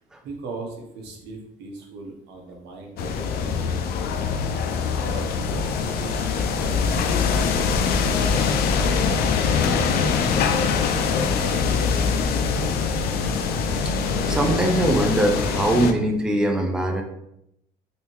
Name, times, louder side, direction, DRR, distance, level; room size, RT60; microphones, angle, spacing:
voice 1, 0.2-4.0 4.7-9.1 9.4-12.9, right 3 dB, 85° right, 1 dB, 0.9 m, -40 dB
sound 1, 3.0-15.9, left 5 dB, 65° left, 0.4 m, -23 dB
voice 2, 14.3-17.0, right 1 dB, 5° right, 2 dB, 0.4 m, -22 dB
3.5 x 2.7 x 2.9 m, 0.79 s
cardioid pair, 110°, 17 cm